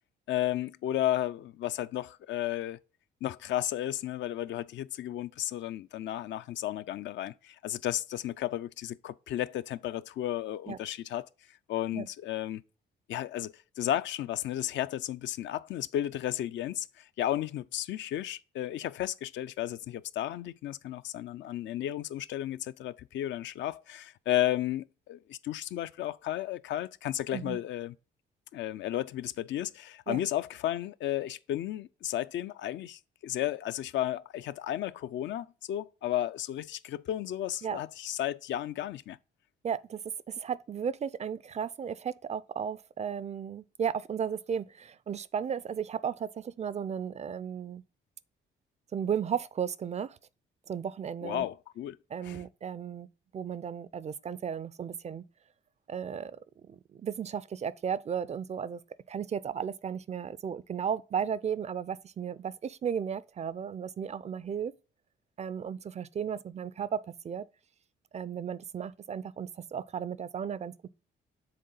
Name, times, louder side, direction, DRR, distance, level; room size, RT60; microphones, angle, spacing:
voice 1, 0.3-2.8 3.2-11.3 11.7-12.6 13.1-27.9 28.5-39.2 51.2-52.0 52.2-52.4, left 12 dB, 65° left, 0.4 m, -33 dB
voice 2, 39.6-40.0 40.3-47.8 48.9-50.2 50.7-51.5 52.1-53.1 53.3-55.2 55.9-58.8 59.1-64.7 65.4-67.0 67.2-67.5 68.1-70.9, right 7 dB, 35° right, 0.4 m, -35 dB
6.6 x 3.8 x 3.8 m
cardioid pair, 90°, 20 cm